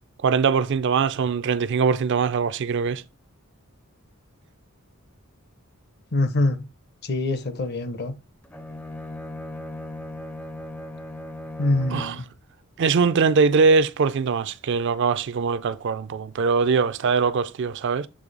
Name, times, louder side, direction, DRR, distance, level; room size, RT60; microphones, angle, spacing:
voice 1, 0.2-3.0 11.9-12.2 12.8-18.1, right 5 dB, 60° right, 0.4 m, -22 dB
voice 2, 6.1-6.6 7.0-8.1 11.6-12.3, left 2 dB, 50° left, 0.6 m, -24 dB
Bowed string instrument, 8.4-12.3, left 1 dB, 5° left, 0.4 m, -37 dB
7.7 x 3.1 x 3.9 m
head